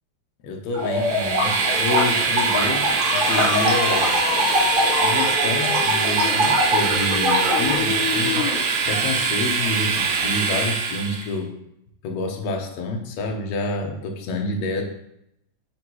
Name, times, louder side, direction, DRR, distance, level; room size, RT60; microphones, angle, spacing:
voice 1, 0.4-4.1 4.9-8.5 8.8-11.5 12.0-14.8, left 2 dB, 70° left, 2 dB, 2.2 m, -28 dB
sound 1, 0.7-7.8, equal, 45° right, 2.3 m, -24 dB
Train, 0.8-11.3, right 5 dB, 80° right, 1.1 m, -23 dB
sound 2, 3.1-8.6, left 6 dB, 85° left, 2.3 m, -28 dB
9.1 x 5.2 x 3.1 m, 0.80 s
omnidirectional pair, 3.4 m